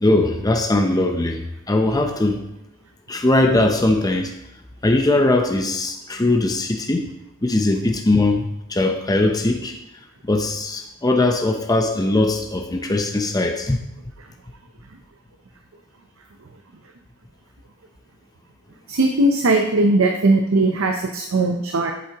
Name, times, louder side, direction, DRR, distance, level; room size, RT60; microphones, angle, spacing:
voice 1, 0.0-2.4 3.1-4.3 4.8-7.1 7.4-9.7 10.2-13.8, left 2 dB, 20° left, 3 dB, 0.6 m, -20 dB
voice 2, 18.9-21.9, right 2 dB, 75° right, 4 dB, 0.6 m, -19 dB
8.1 x 7.5 x 2.9 m, 0.85 s
head